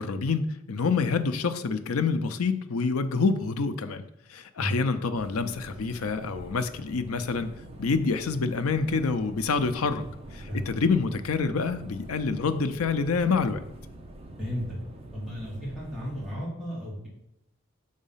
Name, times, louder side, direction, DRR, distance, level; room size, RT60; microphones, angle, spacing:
voice 1, 0.0-7.5 7.8-10.1 10.3-13.6, left 4 dB, 85° left, 10 dB, 0.6 m, -27 dB
sound 1, 5.1-16.4, right 1 dB, 25° right, 0.7 m, -45 dB
voice 2, 14.4-14.8 15.1-17.1, equal, ahead, -8 dB, 2.6 m, -33 dB
6.4 x 4.1 x 5.5 m, 0.84 s
head